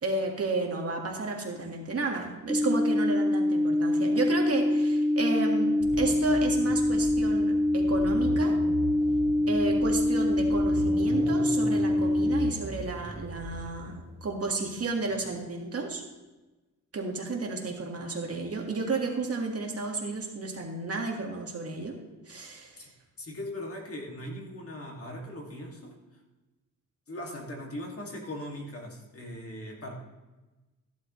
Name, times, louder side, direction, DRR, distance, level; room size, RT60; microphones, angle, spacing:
voice 1, 0.0-8.6 9.5-13.9 14.2-16.0 16.9-22.0 22.3-22.8, right 3 dB, 45° right, 1 dB, 1.8 m, -32 dB
sound 1, 2.5-12.5, left 1 dB, ahead, 0.4 m, -25 dB
sound 2, 5.8-15.2, right 1 dB, 20° right, 1.9 m, -39 dB
voice 2, 23.2-26.0 27.1-29.9, left 1 dB, 45° left, -1 dB, 2.3 m, -39 dB
14.5 x 11.5 x 3.1 m, 1.1 s
wide cardioid pair, 140°, 34 cm